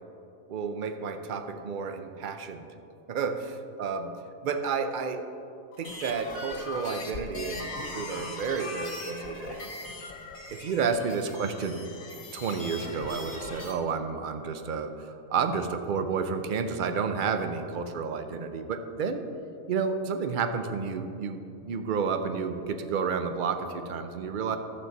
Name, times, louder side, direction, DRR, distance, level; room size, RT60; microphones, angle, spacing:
voice 1, 0.5-2.7 3.1-4.1 4.4-5.3 5.8-9.6 10.5-11.9 12.3-19.2 19.7-24.6, right 5 dB, 50° right, 8 dB, 0.6 m, -31 dB
sound 1, 5.7-13.7, left 2 dB, 90° left, 1.8 m, -39 dB
11.5 x 7.8 x 4.0 m, 2.7 s
omnidirectional pair, 1.4 m